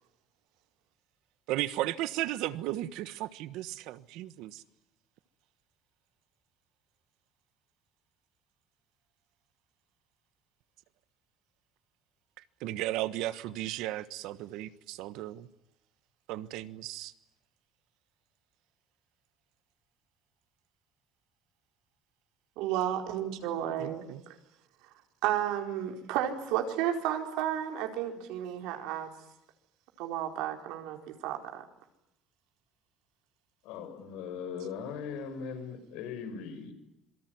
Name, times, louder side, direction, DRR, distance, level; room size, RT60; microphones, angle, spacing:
voice 1, 1.5-4.6 12.6-15.5 16.3-17.1 23.8-24.2, right 15 dB, 65° right, 1.3 m, -35 dB
voice 2, 22.6-24.3 25.2-29.1 30.0-31.6, right 11 dB, 85° right, 4.4 m, -32 dB
voice 3, 33.6-36.7, left 6 dB, 85° left, 5.9 m, -39 dB
27.0 x 23.5 x 9.5 m
cardioid pair, 180°, 0 cm